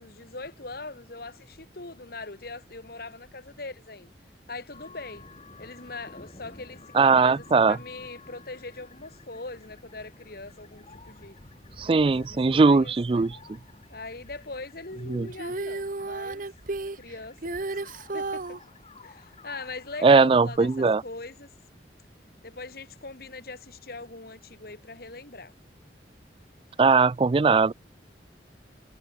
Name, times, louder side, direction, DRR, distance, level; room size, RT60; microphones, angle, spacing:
voice 1, 0.0-4.1 4.5-5.3 5.6-11.4 11.8-13.3 13.9-16.5 16.9-18.6 19.0-21.5 22.4-25.5, left 3 dB, 55° left, 2.0 m, -41 dB
sound 1, 4.7-20.8, left 3 dB, 35° left, 2.1 m, -51 dB
voice 2, 6.9-7.8 11.8-13.4 15.1-15.3 20.0-21.0 26.8-27.7, right 4 dB, 30° right, 0.3 m, -20 dB
Female singing, 15.3-18.6 20.6-20.7, right 3 dB, 50° right, 0.8 m, -33 dB
head